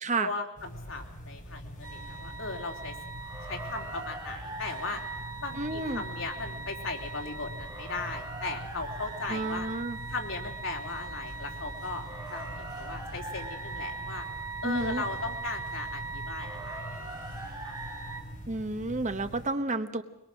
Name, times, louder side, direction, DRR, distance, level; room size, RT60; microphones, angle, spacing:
voice 1, 0.2-2.9 3.5-5.0 5.4-9.7 10.1-12.0 12.3-14.3 14.6-17.2 17.6-17.7, left 3 dB, 80° left, 1 dB, 3.4 m, -37 dB
sound 1, 0.6-19.5, equal, 40° left, 6.1 m, -44 dB
sound 2, 1.8-18.2, right 3 dB, 20° right, 2.7 m, -40 dB
voice 2, 5.6-6.0 9.3-10.0 14.6-15.0 18.5-20.0, right 2 dB, 40° right, 10 dB, 1.1 m, -31 dB
23.0 x 22.0 x 6.3 m, 0.88 s
head